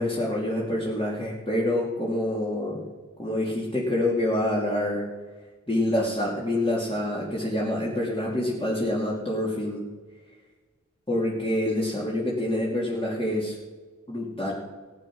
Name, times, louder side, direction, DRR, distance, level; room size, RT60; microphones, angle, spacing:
voice 1, 0.0-2.8 3.2-5.0 5.7-9.8 11.1-13.5 14.1-14.5, left 1 dB, 15° left, -6 dB, 3.0 m, -26 dB
15.0 x 9.3 x 6.3 m, 1.4 s
wide cardioid pair, 45°, 31 cm